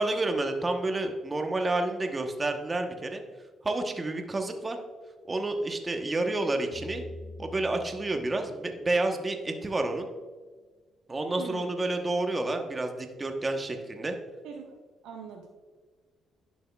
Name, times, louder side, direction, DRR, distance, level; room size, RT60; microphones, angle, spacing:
voice 1, 0.0-3.2 3.6-4.8 5.3-7.0 7.4-10.1 11.1-14.2, right 2 dB, 25° right, 5 dB, 0.9 m, -29 dB
sound 1, 6.7-10.0, left 2 dB, 80° left, 1.2 m, -46 dB
voice 2, 11.4-11.7 14.4-14.8 15.0-15.5, right 6 dB, 90° right, 1 dB, 0.6 m, -42 dB
11.0 x 6.1 x 2.3 m, 1.4 s
cardioid pair, 90°, 0 cm